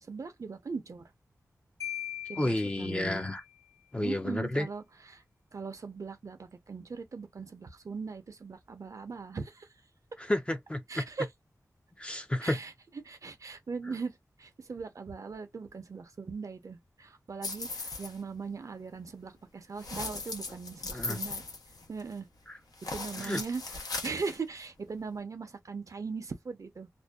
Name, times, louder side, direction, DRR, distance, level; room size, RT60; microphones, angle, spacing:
voice 1, 0.0-1.1 2.3-3.2 4.0-5.2 5.5-9.7 10.9-11.3 12.4-12.7 13.0-21.4 21.9-22.3 22.9-26.9, right 4 dB, 60° right, 0.6 m, -39 dB
Marimba xylophone, 1.8-3.5, left 12 dB, 55° left, 1.0 m, -41 dB
voice 2, 2.4-3.4 3.9-4.7 10.2-11.0 12.0-12.6 20.9-21.2 22.5-22.6 23.2-23.4, left 1 dB, 15° left, 0.5 m, -31 dB
sound 1, 17.4-18.2 19.8-22.2 22.7-24.4, left 3 dB, 80° left, 0.8 m, -38 dB
2.5 x 2.2 x 2.2 m
wide cardioid pair, 85°, 6 cm